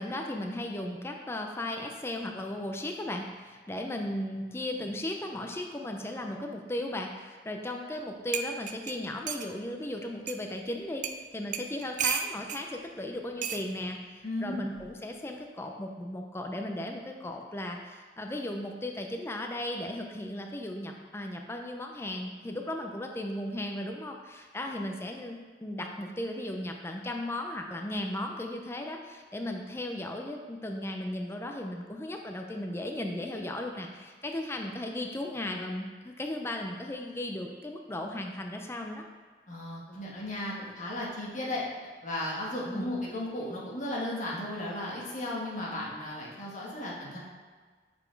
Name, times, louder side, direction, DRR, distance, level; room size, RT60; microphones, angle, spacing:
voice 1, 0.0-39.0 42.7-42.9, left 1 dB, 15° left, 3 dB, 0.4 m, -36 dB
sound 1, 7.9-8.0 8.3-9.5 10.3-10.4 11.0-11.2 11.5-12.6 13.4-13.6 14.7-15.0, right 8 dB, 45° right, 0.4 m, -33 dB
voice 2, 14.2-14.6 39.5-41.6 42.0-47.2, left 1 dB, 45° left, -5 dB, 1.6 m, -35 dB
6.0 x 5.7 x 4.6 m, 1.5 s
head